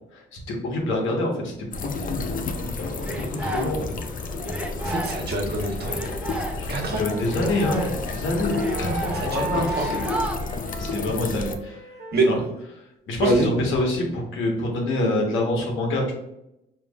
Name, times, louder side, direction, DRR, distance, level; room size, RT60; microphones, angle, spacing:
voice 1, 0.1-3.9 6.6-10.0 10.8-11.8 12.3-12.4 13.1-16.1, left 2 dB, 80° left, 0 dB, 1.3 m, -27 dB
sound 1, 1.7-11.6, left 3 dB, 45° left, 0.5 m, -31 dB
sound 2, 2.5-4.1 4.4-10.4, right 1 dB, 5° right, 0.6 m, -33 dB
voice 2, 4.8-6.0 6.7-7.0 9.1-9.5 9.7-9.8 12.1-12.3 13.2-13.5, right 2 dB, 55° right, 0 dB, 1.3 m, -24 dB
Wind instrument woodwind instrument, 7.0-12.3, right 3 dB, 35° right, 1.0 m, -36 dB
4.9 x 3.2 x 2.4 m, 0.86 s
cardioid pair, 90°, 20 cm